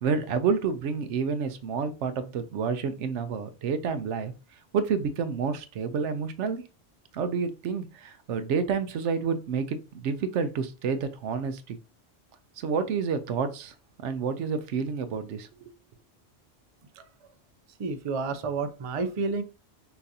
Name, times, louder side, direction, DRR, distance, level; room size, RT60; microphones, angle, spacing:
voice 1, 0.0-4.3 4.7-6.6 7.1-11.8 12.6-13.7 14.0-15.7, right 5 dB, 80° right, 10 dB, 0.9 m, -29 dB
voice 2, 17.8-19.4, right 4 dB, 45° right, 9 dB, 0.4 m, -30 dB
5.8 x 2.6 x 2.7 m, 0.31 s
omnidirectional pair, 1.2 m